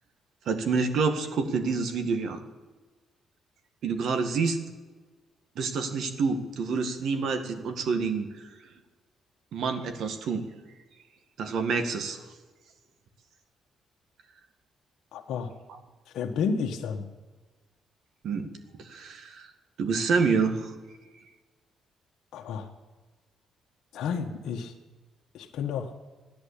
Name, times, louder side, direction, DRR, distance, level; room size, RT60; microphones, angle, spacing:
voice 1, 0.4-2.4 3.8-4.6 5.5-8.3 9.5-10.4 11.4-12.2 15.7-15.8 18.2-18.5 18.8-19.5 19.8-20.7, right 4 dB, 70° right, 7 dB, 1.8 m, -27 dB
voice 2, 15.1-15.5 16.1-17.0 22.3-22.7 23.9-24.7 25.3-25.9, left 6 dB, 80° left, 2 dB, 1.4 m, -31 dB
13.5 x 10.5 x 8.5 m, 1.3 s
cardioid pair, 90°, 0 cm